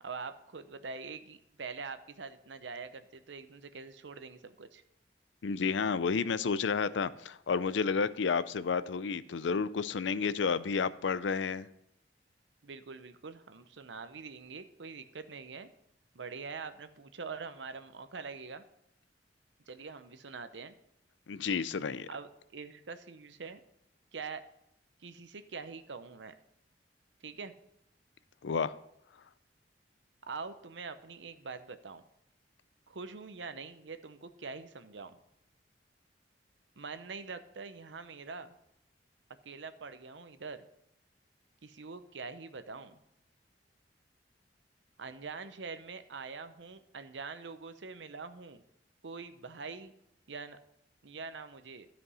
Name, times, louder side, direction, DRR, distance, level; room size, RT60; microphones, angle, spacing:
voice 1, 0.0-4.8 12.6-15.7 16.1-18.6 19.7-20.7 22.1-23.6 24.1-24.5 25.0-26.3 27.2-27.5 30.2-32.0 32.9-35.2 36.8-38.5 39.4-40.7 41.6-43.0 45.0-48.6 49.0-49.9 50.3-50.6 51.0-51.9, right 4 dB, 85° right, 10 dB, 0.8 m, -44 dB
voice 2, 5.4-11.7 21.3-22.1 28.4-28.7, left 5 dB, 85° left, 16 dB, 0.5 m, -31 dB
12.5 x 5.2 x 5.5 m, 0.80 s
head